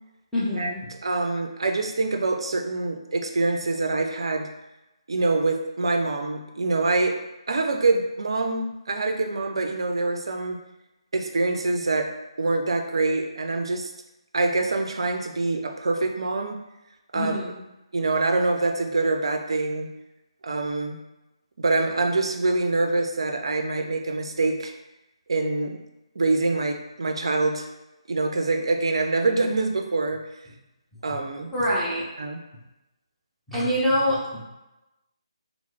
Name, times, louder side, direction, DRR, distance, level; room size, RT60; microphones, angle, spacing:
voice 1, 0.3-0.8 17.1-17.5 31.1-31.2 31.5-32.0 33.5-34.5, equal, ahead, -12 dB, 0.7 m, -25 dB
voice 2, 1.0-4.5 5.1-7.2 7.5-10.6 11.1-12.1 12.4-13.9 14.3-16.6 17.1-17.3 17.9-19.9 20.4-21.0 21.6-24.7 25.3-25.8 26.2-27.7 28.1-30.2 31.0-31.6 32.2-32.4, right 3 dB, 60° right, 4 dB, 0.4 m, -25 dB
3.0 x 2.0 x 3.4 m, 0.97 s
figure-of-eight pair, 145°, 3 cm